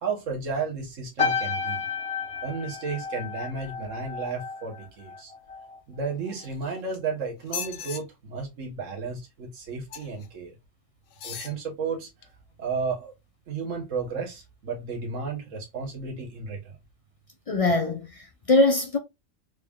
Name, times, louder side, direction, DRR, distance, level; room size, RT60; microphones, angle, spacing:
voice 1, 0.0-1.8 2.4-5.3 5.9-10.6 11.2-12.1 12.6-13.1 13.5-16.8, right 4 dB, 75° right, 1.5 m, -33 dB
sound 1, 1.2-5.8 6.1-6.5, left 5 dB, 30° left, 1.0 m, -32 dB
sound 2, 6.3-7.0 7.4-8.0 9.9-10.3 11.1-11.6 12.2-12.3, left 8 dB, 80° left, 1.0 m, -38 dB
voice 2, 17.5-19.0, left 2 dB, 45° left, 0.4 m, -22 dB
4.0 x 3.6 x 2.3 m
omnidirectional pair, 1.3 m